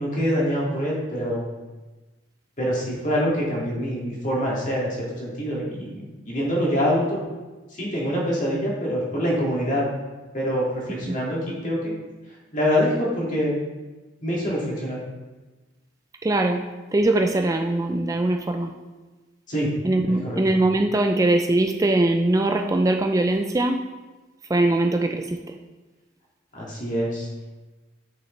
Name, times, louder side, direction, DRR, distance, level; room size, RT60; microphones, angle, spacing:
voice 1, 0.0-1.5 2.6-7.2 7.7-9.9 10.3-12.0 12.5-13.5 14.2-15.0 19.5-19.7 20.1-20.4 26.5-27.3, equal, 45° left, -4 dB, 2.1 m, -25 dB
voice 2, 16.2-16.6 16.9-18.7 19.8-23.8 24.5-25.4, right 2 dB, 20° right, 4 dB, 0.3 m, -21 dB
8.4 x 6.3 x 3.2 m, 1.2 s
head